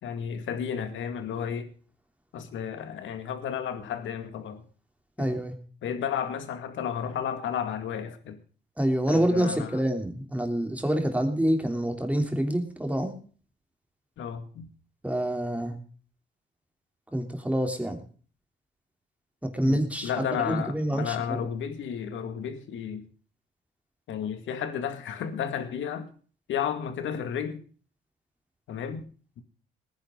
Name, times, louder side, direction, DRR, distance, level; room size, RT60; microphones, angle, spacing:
voice 1, 0.0-1.7 2.3-4.6 5.2-5.4 5.8-8.4 9.1-9.8 14.2-14.7 19.6-23.1 24.1-26.1 26.5-27.6 28.7-29.1, left 8 dB, 75° left, 9 dB, 2.1 m, -32 dB
voice 2, 5.2-5.5 8.8-13.1 15.0-15.8 17.1-18.0 19.4-21.4, right 1 dB, 5° right, 4 dB, 3.3 m, -27 dB
20.0 x 10.5 x 3.9 m, 0.41 s
cardioid pair, 90°, 20 cm